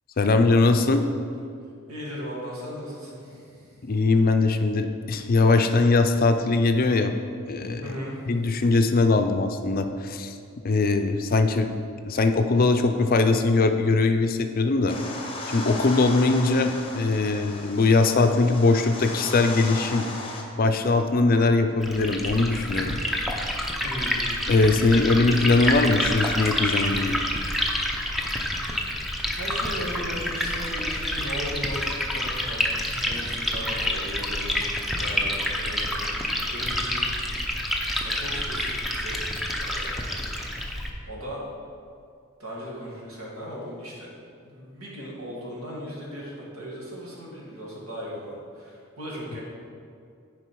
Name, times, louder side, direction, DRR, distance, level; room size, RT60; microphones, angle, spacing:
voice 1, 0.2-1.1 3.8-7.1 7.5-7.9 8.3-10.4 10.6-11.7 12.0-15.0 15.5-20.1 20.6-23.0 24.5-27.2, left 3 dB, 45° left, 7 dB, 0.5 m, -21 dB
voice 2, 1.9-3.8 7.8-8.2 17.7-17.9 23.8-24.2 29.3-32.6 32.9-37.1 37.7-39.2 39.6-40.3 41.1-41.4 42.4-44.1 44.4-49.4, equal, 85° right, -4 dB, 2.2 m, -37 dB
sound 1, 14.9-20.4, left 2 dB, 25° left, 0.9 m, -36 dB
Liquid, 21.8-40.9, left 1 dB, ahead, 0.6 m, -28 dB
10.0 x 4.9 x 4.7 m, 2.3 s
head